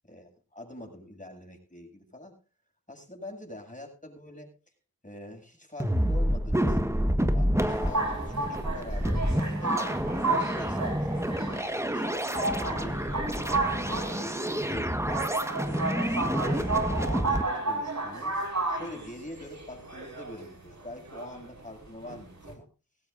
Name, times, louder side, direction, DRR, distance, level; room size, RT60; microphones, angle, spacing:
voice 1, 0.1-2.3 2.9-4.5 5.0-6.8 7.3-11.4 11.8-13.2 13.7-15.3 15.6-16.6 17.0-18.3 18.7-22.7, left 1 dB, 20° left, 2 dB, 7.6 m, -45 dB
sound 1, 5.8-17.4, equal, 10° right, 1.4 m, -28 dB
sound 2, 7.7-22.5, right 3 dB, 50° right, 5.5 m, -33 dB
19.0 x 16.5 x 2.6 m, 0.34 s
cardioid pair, 40°, 35 cm